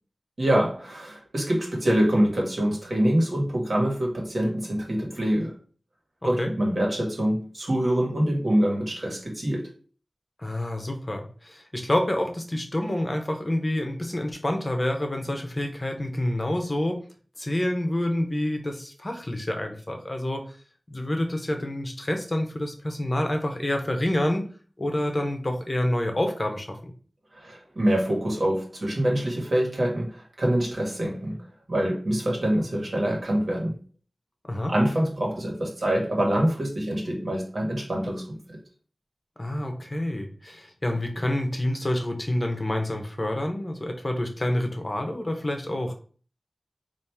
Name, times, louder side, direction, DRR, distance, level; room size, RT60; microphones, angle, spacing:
voice 1, 0.4-5.6 6.2-9.7 27.3-31.4 31.7-33.8 34.7-38.6, right 1 dB, 60° right, 1.5 m, -25 dB
voice 2, 10.4-17.0 17.4-20.4 20.9-24.5 24.8-26.9 34.5-34.7 39.4-45.9, left 1 dB, 35° left, 0.9 m, -28 dB
4.2 x 2.6 x 3.4 m
wide cardioid pair, 65°, 0 cm